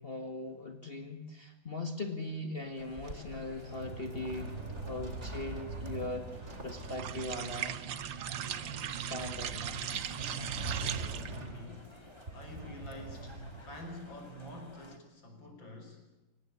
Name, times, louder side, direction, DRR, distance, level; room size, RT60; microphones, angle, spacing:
voice 1, 0.0-4.5 4.8-6.3 6.6-7.8 9.0-9.6, left 2 dB, 30° left, 6 dB, 2.1 m, -40 dB
sound 1, 2.6-14.5, right 2 dB, 35° right, 3.0 m, -43 dB
sound 2, 2.7-15.0, left 2 dB, 15° left, 2.3 m, -56 dB
sound 3, 6.8-11.5, right 9 dB, 75° right, 1.8 m, -38 dB
voice 2, 10.7-12.0 12.3-16.1, left 1 dB, 80° left, 4 dB, 6.2 m, -48 dB
24.0 x 19.5 x 9.7 m, 1.1 s
omnidirectional pair, 2.1 m